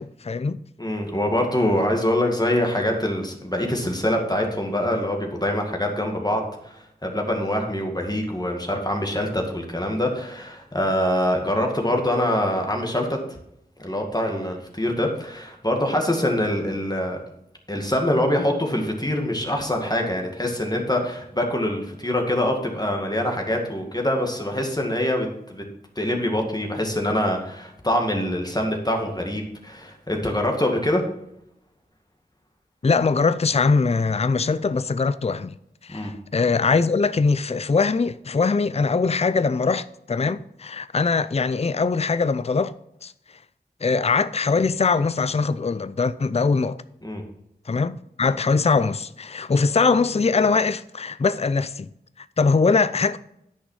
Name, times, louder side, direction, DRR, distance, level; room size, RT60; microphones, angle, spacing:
voice 1, 0.0-0.6 32.8-35.5 35.8-42.7 43.0-43.1 43.8-46.8 47.7-51.9 52.2-53.2, left 4 dB, 40° left, 0.4 m, -22 dB
voice 2, 0.8-13.4 13.8-17.2 17.7-25.6 26.0-31.0 35.9-36.1 47.0-47.2, left 1 dB, 25° left, 2.1 m, -24 dB
10.0 x 6.1 x 5.7 m
wide cardioid pair, 50°, 17 cm